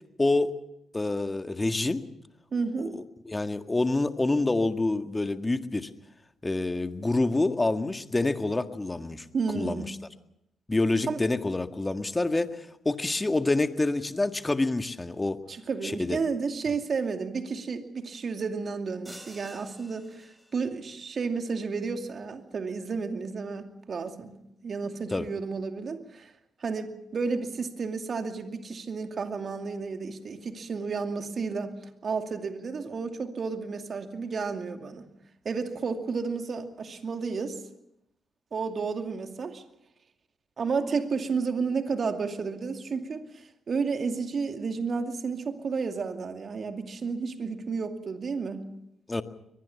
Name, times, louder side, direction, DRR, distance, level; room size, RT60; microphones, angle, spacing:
voice 1, 0.2-0.5 0.9-2.1 2.9-5.9 6.4-9.3 9.6-10.0 10.7-15.4 15.8-16.2 25.1-25.3 49.1-49.2, left 2 dB, 20° left, 9 dB, 1.8 m, -27 dB
voice 2, 2.5-3.0 9.3-9.9 11.1-11.2 15.5-24.3 24.6-26.3 26.6-31.7 32.0-35.1 35.4-37.6 38.5-39.6 40.6-48.7, right 5 dB, 50° right, 6 dB, 2.4 m, -32 dB
sound 1, 19.0-20.8, equal, 5° right, 4.9 m, -49 dB
23.0 x 20.0 x 7.1 m, 0.81 s
hypercardioid pair, 40°, 0 cm